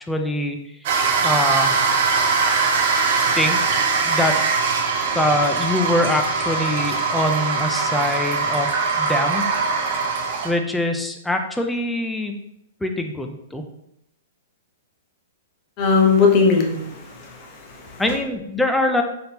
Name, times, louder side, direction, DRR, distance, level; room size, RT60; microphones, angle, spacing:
voice 1, 0.1-0.6 1.2-1.7 3.4-3.6 4.0-4.4 5.1-8.7 9.0-9.4 10.4-12.3 12.8-13.6 18.0-19.0, left 1 dB, 5° left, 4 dB, 0.3 m, -23 dB
sound 1, 0.8-10.5, right 4 dB, 50° right, 0.6 m, -21 dB
voice 2, 15.8-18.0, left 5 dB, 30° left, 1 dB, 0.8 m, -19 dB
4.1 x 3.4 x 2.8 m, 0.79 s
hypercardioid pair, 160°, 0 cm